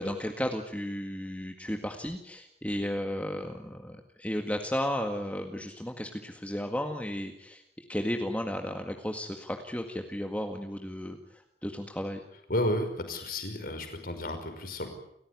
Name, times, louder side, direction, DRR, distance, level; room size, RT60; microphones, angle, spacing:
voice 1, 0.0-7.6 7.9-12.2, equal, 10° left, 3 dB, 1.9 m, -34 dB
voice 2, 12.5-14.9, left 1 dB, 55° left, 7 dB, 5.5 m, -32 dB
30.0 x 15.5 x 9.7 m, 0.76 s
head